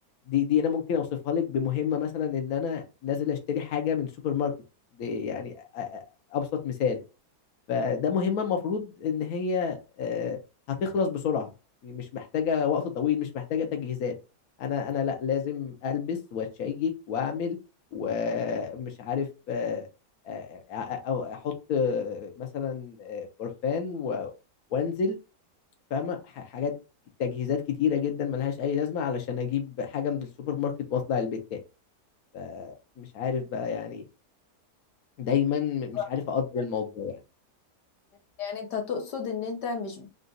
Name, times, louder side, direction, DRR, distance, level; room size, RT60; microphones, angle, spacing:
voice 1, 0.3-4.5 5.0-6.0 6.3-7.0 7.7-10.4 10.8-11.5 11.8-14.1 14.6-17.6 17.9-19.9 20.2-24.3 24.7-25.2 25.9-26.7 27.2-31.6 32.3-34.0 35.2-37.2, left 7 dB, 65° left, 4 dB, 1.2 m, -29 dB
voice 2, 38.4-40.1, left 6 dB, 85° left, 2 dB, 1.7 m, -32 dB
3.9 x 2.4 x 3.8 m, 0.29 s
omnidirectional pair, 1.8 m